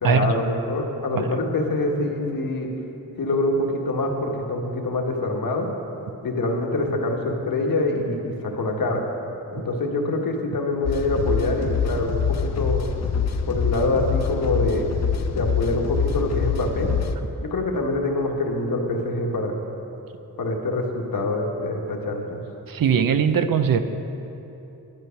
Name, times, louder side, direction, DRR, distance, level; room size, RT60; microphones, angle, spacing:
voice 1, 0.0-2.7 3.2-5.7 6.2-9.0 9.5-12.9 13.5-14.9 15.3-16.9 17.4-19.6 20.4-22.4, left 2 dB, 65° left, 1 dB, 1.4 m, -25 dB
sound 1, 10.8-17.2, left 6 dB, 45° left, 0.5 m, -25 dB
voice 2, 22.7-23.8, right 7 dB, 65° right, 10 dB, 0.6 m, -20 dB
11.0 x 9.7 x 5.7 m, 3.0 s
wide cardioid pair, 150°, 37 cm